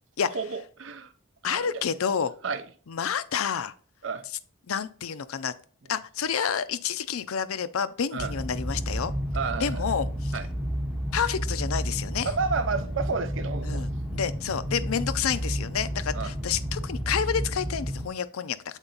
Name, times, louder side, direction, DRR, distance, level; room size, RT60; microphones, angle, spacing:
voice 1, 0.3-1.1 1.4-1.8 2.4-2.7 4.0-4.2 8.1-8.3 9.3-9.8 10.3-10.5 12.2-13.9 16.1-16.3, right 4 dB, 60° right, 0.6 m, -31 dB
voice 2, 1.4-2.3 2.9-3.7 4.7-5.5 5.9-9.1 9.6-10.3 11.1-12.3 13.6-18.8, left 7 dB, 80° left, 0.5 m, -29 dB
sound 1, 8.2-18.1, equal, 5° right, 0.7 m, -31 dB
7.2 x 4.4 x 3.9 m
head